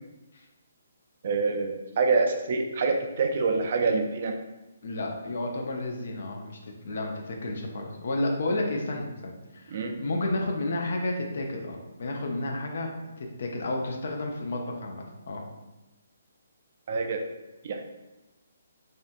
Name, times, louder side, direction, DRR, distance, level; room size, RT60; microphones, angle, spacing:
voice 1, 1.2-4.3 9.7-9.9 16.9-17.2 17.6-17.8, right 4 dB, 50° right, 4 dB, 0.3 m, -26 dB
voice 2, 4.8-12.9 13.2-15.4, left 2 dB, 60° left, 1 dB, 0.5 m, -31 dB
2.6 x 2.2 x 2.5 m, 1.0 s
figure-of-eight pair, 140°, 0 cm